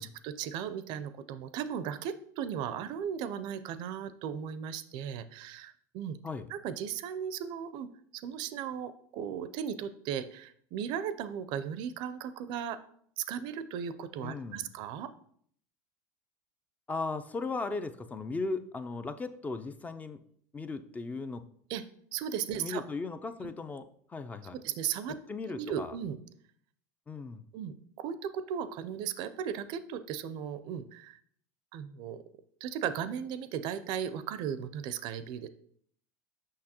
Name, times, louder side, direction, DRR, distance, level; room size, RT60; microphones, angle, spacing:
voice 1, 0.0-6.2 6.5-12.8 13.2-15.1 21.7-21.8 22.1-22.8 23.4-23.5 24.5-25.2 25.5-26.2 27.5-31.2 31.7-32.2 32.6-35.5, right 8 dB, 60° right, 13 dB, 0.5 m, -36 dB
voice 2, 14.2-14.7 16.9-20.2 20.5-21.4 22.5-23.8 24.1-24.6 25.3-26.0 27.1-27.5, left 3 dB, 15° left, 10 dB, 0.4 m, -37 dB
6.4 x 5.8 x 2.9 m, 0.63 s
supercardioid pair, 110°, 9 cm